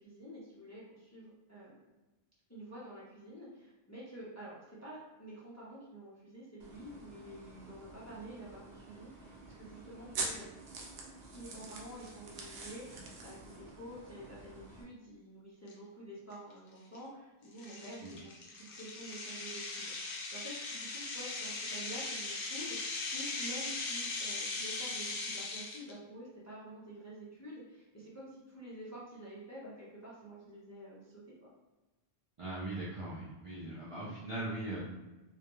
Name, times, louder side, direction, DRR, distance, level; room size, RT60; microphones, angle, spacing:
voice 1, 0.0-1.9 2.5-10.6 11.3-31.5, right 1 dB, 20° left, -8 dB, 0.5 m, -49 dB
sound 1, 6.6-14.8, right 3 dB, 80° right, 0.8 m, -46 dB
sound 2, 15.7-15.8 16.3-16.5 16.9-17.0 17.6-25.9, left 3 dB, 65° left, 0.7 m, -39 dB
voice 2, 32.4-34.8, right 2 dB, 50° right, -7 dB, 0.4 m, -40 dB
2.3 x 2.1 x 2.9 m, 1.1 s
omnidirectional pair, 1.1 m